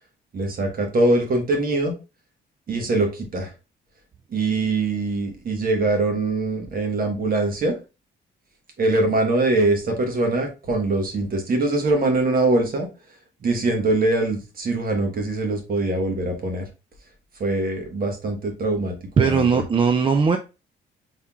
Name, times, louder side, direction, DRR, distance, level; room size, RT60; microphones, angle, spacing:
voice 1, 0.3-1.9 2.7-3.5 4.3-7.7 8.8-12.9 13.4-16.6 17.4-19.6, right 2 dB, 45° right, 3 dB, 1.3 m, -23 dB
voice 2, 19.2-20.4, right 5 dB, 25° right, 6 dB, 0.4 m, -19 dB
4.3 x 3.5 x 2.3 m, 0.30 s
cardioid pair, 90°, 20 cm